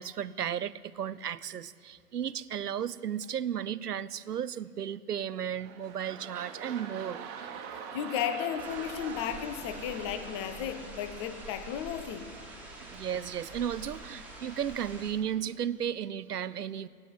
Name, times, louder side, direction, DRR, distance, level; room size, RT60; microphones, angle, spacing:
voice 1, 0.0-7.2 12.8-16.9, right 9 dB, 85° right, 18 dB, 0.6 m, -34 dB
sound 1, 5.2-11.8 12.3-12.4, right 7 dB, 30° right, 1.4 m, -44 dB
voice 2, 7.7-12.3, left 9 dB, 20° left, 11 dB, 0.6 m, -34 dB
sound 2, 8.6-15.1, right 2 dB, 5° right, 2.0 m, -46 dB
17.0 x 6.3 x 9.5 m, 2.4 s
figure-of-eight pair, 115°, 45 cm